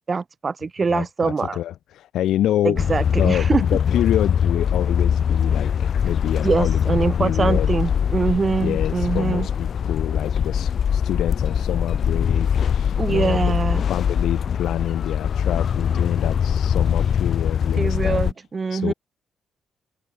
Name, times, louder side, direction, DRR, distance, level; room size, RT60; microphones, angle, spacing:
voice 1, 0.1-1.6 2.6-3.6 6.4-9.5 13.0-13.8 17.8-18.9, right 4 dB, 25° right, 3.8 m, -23 dB
voice 2, 0.9-7.7 8.6-13.4 13.9-18.2 18.7-18.9, left 12 dB, 80° left, 5.6 m, -27 dB
sound 1, 2.8-18.3, left 8 dB, 45° left, 5.2 m, -22 dB
cardioid pair, 165°, 0 cm